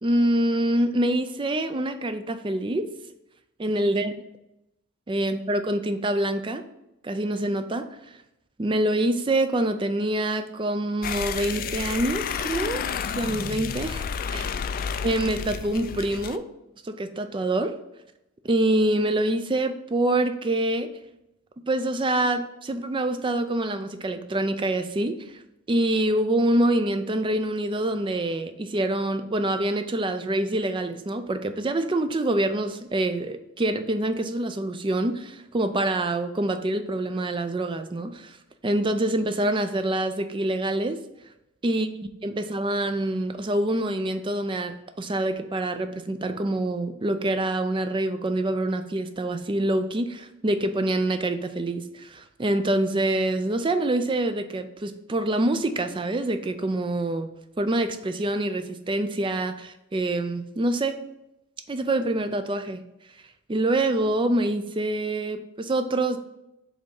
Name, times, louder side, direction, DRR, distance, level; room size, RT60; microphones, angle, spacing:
voice 1, 0.0-2.9 3.6-4.2 5.1-6.6 7.0-7.9 8.6-12.8 13.2-14.0 14.3-14.5 15.0-16.4 16.8-17.8 18.4-20.9 21.7-25.2 25.7-38.4 38.6-41.0 41.6-42.0 42.2-57.3 57.6-61.0 61.7-62.8 63.5-66.2, right 1 dB, 25° right, 8 dB, 0.4 m, -25 dB
sound 1, 11.0-16.4, left 7 dB, 45° left, 0.3 m, -31 dB
5.2 x 3.6 x 5.3 m, 0.88 s
head